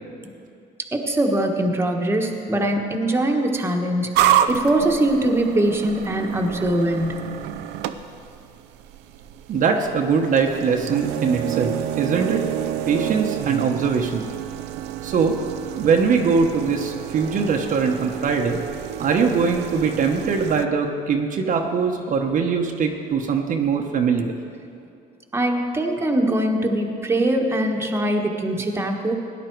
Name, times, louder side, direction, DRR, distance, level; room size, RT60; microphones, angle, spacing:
voice 1, 0.9-4.1 4.5-7.3 25.3-29.1, right 1 dB, 15° right, 2 dB, 1.3 m, -22 dB
sound 1, 4.1-20.6, right 11 dB, 90° right, 0.6 m, -28 dB
voice 2, 9.5-12.4 12.9-14.3 15.0-15.4 15.8-18.6 19.0-24.3, right 5 dB, 50° right, 2 dB, 1.0 m, -22 dB
17.0 x 10.5 x 4.6 m, 2.5 s
cardioid pair, 110°, 17 cm